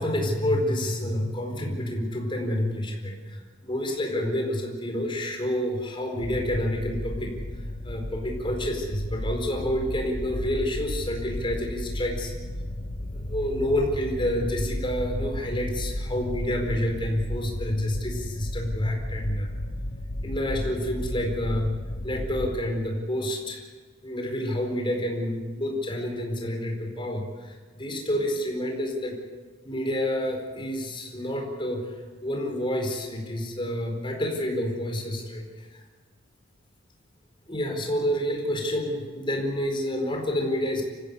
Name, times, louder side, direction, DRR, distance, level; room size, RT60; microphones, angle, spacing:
voice 1, 0.0-12.3 13.1-19.5 20.2-23.7 24.0-29.2 29.6-35.8 37.5-40.8, left 1 dB, 25° left, 1 dB, 4.5 m, -29 dB
sound 1, 6.2-22.6, left 1 dB, 45° left, 1.5 m, -34 dB
25.5 x 16.0 x 8.2 m, 1.5 s
head